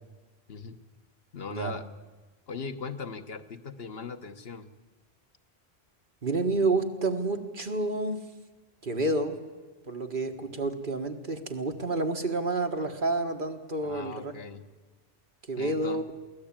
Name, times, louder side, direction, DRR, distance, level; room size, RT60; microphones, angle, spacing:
voice 1, 1.3-1.9 2.5-4.7 13.8-14.7 15.6-16.0, left 5 dB, 70° left, 7 dB, 1.4 m, -39 dB
voice 2, 6.2-8.2 8.8-9.4 9.9-14.3 15.5-16.0, right 2 dB, 55° right, 5 dB, 1.7 m, -29 dB
23.0 x 16.5 x 8.8 m, 1.3 s
omnidirectional pair, 1.1 m